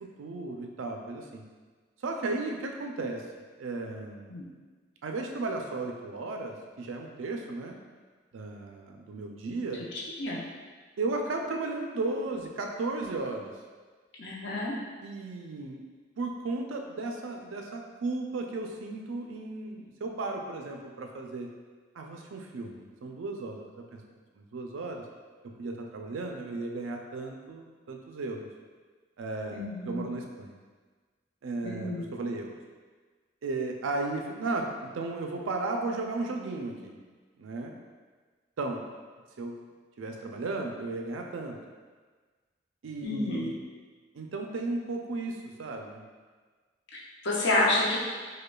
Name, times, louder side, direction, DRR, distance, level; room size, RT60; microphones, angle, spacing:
voice 1, 0.0-1.4 2.0-3.3 3.6-4.4 5.0-7.8 8.3-9.8 11.0-13.5 15.0-15.8 16.2-21.5 22.0-24.0 24.4-25.0 25.4-28.5 29.2-30.6 31.4-32.5 33.4-37.0 37.4-37.8 38.6-38.8 39.4-39.6 40.0-41.6 42.8-43.5 44.1-46.0, right 3 dB, 85° right, 2 dB, 0.4 m, -35 dB
voice 2, 14.2-14.7 29.5-30.2 31.6-32.1 43.0-43.5 46.9-48.0, left 2 dB, 65° left, -4 dB, 0.7 m, -29 dB
5.0 x 2.2 x 2.3 m, 1.4 s
head